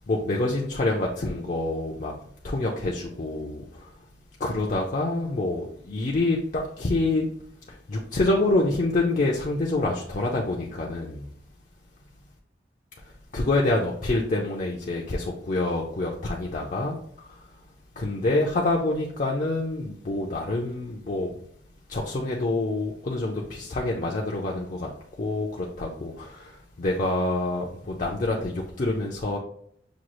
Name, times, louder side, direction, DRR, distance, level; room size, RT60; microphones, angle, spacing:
voice 1, 0.1-2.1 2.4-3.9 4.4-7.3 7.7-11.3 13.3-17.4 18.0-21.3 21.9-24.9 25.2-29.4, left 2 dB, 45° left, -2 dB, 0.5 m, -27 dB
6.1 x 2.3 x 2.9 m, 0.66 s
head